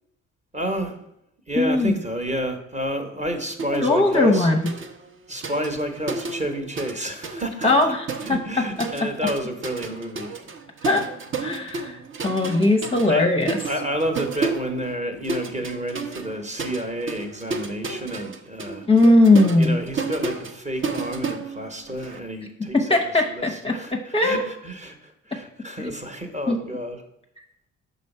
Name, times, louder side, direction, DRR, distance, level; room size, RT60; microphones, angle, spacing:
voice 1, 0.5-1.0 1.5-4.5 5.3-7.7 8.2-10.5 12.9-18.9 19.6-23.0 23.3-27.0, equal, 25° right, 5 dB, 1.0 m, -30 dB
voice 2, 1.6-2.0 3.7-4.6 7.6-8.0 8.3-9.1 10.8-11.0 11.4-13.6 18.9-19.8 22.7-24.4 25.8-25.9 26.5-26.6, left 2 dB, 20° left, 3 dB, 0.7 m, -19 dB
sound 1, 3.6-3.8 4.1-7.0 7.2-22.2, right 4 dB, 40° right, 0.7 m, -32 dB
5.3 x 4.0 x 5.4 m, 0.79 s
cardioid pair, 90°, 30 cm